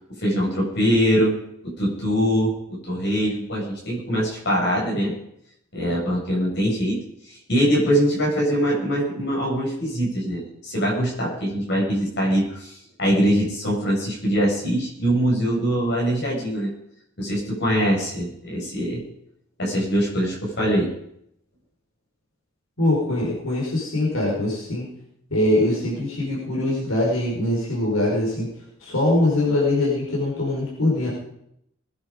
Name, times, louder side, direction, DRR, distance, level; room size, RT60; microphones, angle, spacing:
voice 1, 0.2-1.3 1.8-5.1 5.7-7.0 7.3-16.7 17.2-19.0 19.6-20.9, equal, 55° left, -3 dB, 6.7 m, -23 dB
voice 2, 22.8-24.9 25.3-28.5 28.8-31.1, left 1 dB, 80° left, -4 dB, 5.1 m, -22 dB
20.5 x 10.5 x 5.2 m, 0.73 s
head